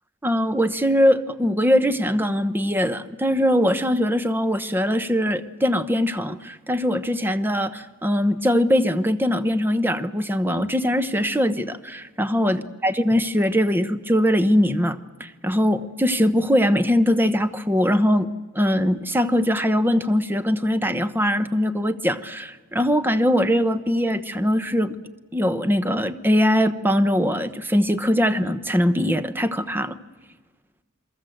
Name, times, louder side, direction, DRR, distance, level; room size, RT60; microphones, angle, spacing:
voice 1, 0.2-18.3 18.5-25.0 25.3-29.9, equal, 10° right, 11 dB, 1.0 m, -21 dB
28.5 x 22.5 x 7.9 m, 1.3 s
head